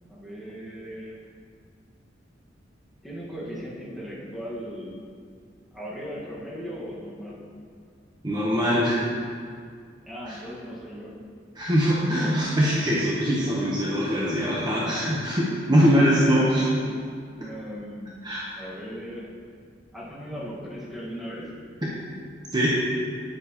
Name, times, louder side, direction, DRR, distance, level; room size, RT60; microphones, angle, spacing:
voice 1, 0.1-1.2 3.0-5.0 5.7-7.4 10.0-11.1 15.8-15.9 16.3-17.0 17.4-18.2 18.5-19.3 19.9-21.5, equal, ahead, -7 dB, 1.6 m, -38 dB
voice 2, 8.2-9.1 10.3-10.4 11.6-16.7 18.2-18.4 21.8-21.9 22.5-22.7, equal, 25° right, -6 dB, 1.0 m, -22 dB
9.2 x 8.3 x 3.0 m, 2.2 s
head